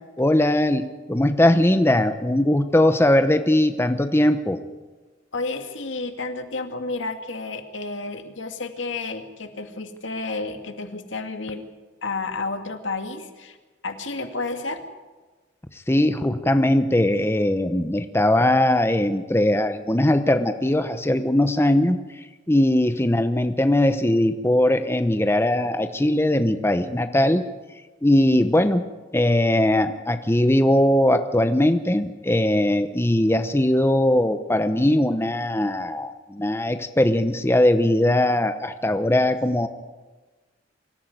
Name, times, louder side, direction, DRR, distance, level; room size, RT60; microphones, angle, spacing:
voice 1, 0.2-4.6 15.9-22.0 22.5-27.4 28.0-28.8 29.1-39.7, left 1 dB, 15° left, 8 dB, 0.9 m, -20 dB
voice 2, 5.3-11.6 12.0-13.6 13.8-14.8, left 3 dB, 85° left, 6 dB, 2.2 m, -31 dB
24.5 x 14.0 x 9.3 m, 1.3 s
head